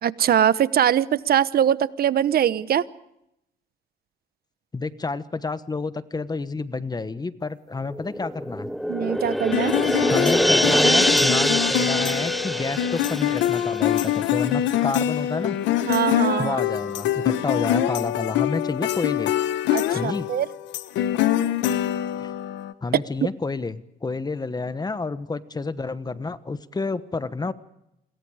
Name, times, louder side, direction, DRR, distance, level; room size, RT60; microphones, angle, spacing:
voice 1, 0.0-2.8 8.9-9.7 15.8-16.6 19.7-20.5, right 10 dB, 55° right, 16 dB, 1.0 m, -22 dB
voice 2, 4.7-8.7 10.1-15.6 16.4-19.3 19.9-20.3 22.2-22.3 22.8-27.5, left 3 dB, 20° left, 13 dB, 1.2 m, -29 dB
sound 1, 7.9-14.9 15.2-15.3, equal, ahead, 1.0 m, -24 dB
sound 2, 9.5-22.7, left 11 dB, 80° left, 1.3 m, -24 dB
28.0 x 22.5 x 5.0 m, 0.82 s
cardioid pair, 90°, 18 cm